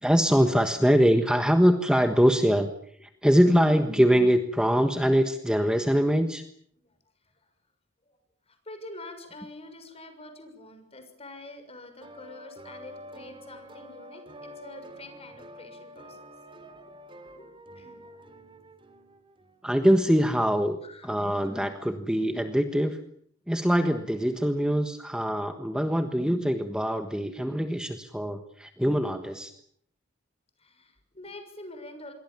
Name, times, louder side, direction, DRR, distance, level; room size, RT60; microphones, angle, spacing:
voice 1, 0.0-2.7 3.0-6.4 19.6-23.0 23.5-29.5, equal, 5° right, 7 dB, 1.4 m, -23 dB
voice 2, 3.0-3.3 6.7-6.9 7.2-7.3 8.1-8.2 8.5-16.2 16.7-16.9 17.3-17.5 17.7-18.2 20.0-20.1 20.8-21.5 30.6-32.1, left 2 dB, 30° left, 7 dB, 6.5 m, -47 dB
sound 1, 12.0-19.6, equal, 25° right, 3.4 m, -47 dB
27.0 x 23.0 x 7.2 m, 0.64 s
head